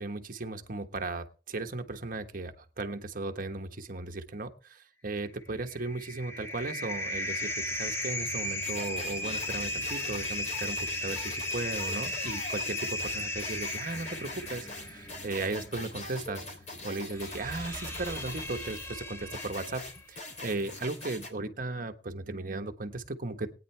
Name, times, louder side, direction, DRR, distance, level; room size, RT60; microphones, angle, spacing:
voice 1, 0.0-16.4 16.8-23.5, right 2 dB, 50° right, 7 dB, 1.2 m, -36 dB
sound 1, 5.5-20.1, left 1 dB, 15° left, 1.5 m, -36 dB
sound 2, 8.6-18.9 19.3-21.3, left 2 dB, 40° left, 3.4 m, -43 dB
20.0 x 9.7 x 3.4 m, 0.35 s
head